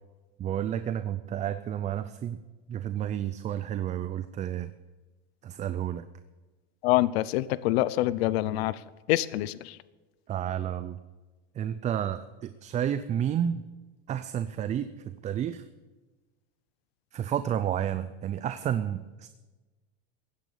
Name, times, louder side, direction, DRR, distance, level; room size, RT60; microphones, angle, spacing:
voice 1, 0.4-2.4 2.7-4.7 5.4-6.1 10.3-11.0 11.5-13.6 14.1-15.6 17.1-19.3, right 10 dB, 25° right, 12 dB, 0.5 m, -31 dB
voice 2, 6.8-9.8, left 16 dB, 85° left, 18 dB, 0.7 m, -26 dB
16.0 x 10.0 x 6.9 m, 1.2 s
supercardioid pair, 150°, 30 cm